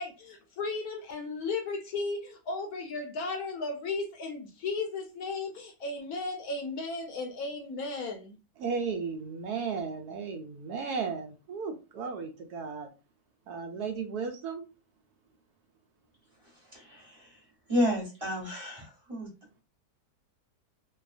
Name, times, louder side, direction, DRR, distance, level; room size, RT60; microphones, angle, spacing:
voice 1, 0.0-8.4, left 3 dB, 70° left, 1.0 m, -35 dB
voice 2, 8.6-12.9 13.5-14.6, right 5 dB, 75° right, 1.0 m, -35 dB
voice 3, 17.7-19.3, equal, 20° right, 1.2 m, -29 dB
2.7 x 2.3 x 2.3 m
omnidirectional pair, 1.8 m